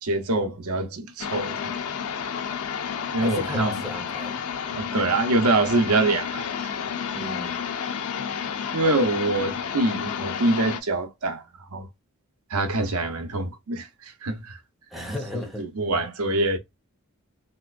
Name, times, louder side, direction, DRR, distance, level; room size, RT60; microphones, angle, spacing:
voice 1, 0.0-1.7 3.1-3.8 4.7-6.7 8.7-11.4 11.7-11.9 12.5-13.9 14.2-14.6 15.6-16.6, right 2 dB, 90° right, 0.7 m, -24 dB
sound 1, 1.2-10.8, left 7 dB, 90° left, 0.5 m, -31 dB
voice 2, 3.2-4.4 7.1-7.6 14.9-15.7, left 1 dB, ahead, 0.9 m, -34 dB
3.2 x 2.9 x 2.4 m
head